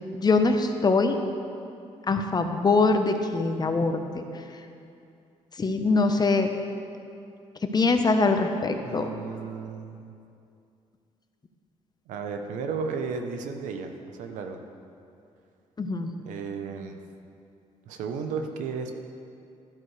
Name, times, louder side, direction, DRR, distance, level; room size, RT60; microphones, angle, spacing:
voice 1, 0.1-1.2 2.1-4.2 5.6-6.5 7.6-9.1 15.8-16.1, left 3 dB, 30° left, 6 dB, 0.9 m, -23 dB
voice 2, 8.8-10.1 12.1-14.6 16.3-17.0 17.9-18.9, right 5 dB, 90° right, 6 dB, 0.8 m, -34 dB
12.0 x 10.5 x 3.3 m, 2.5 s
cardioid pair, 75°, 13 cm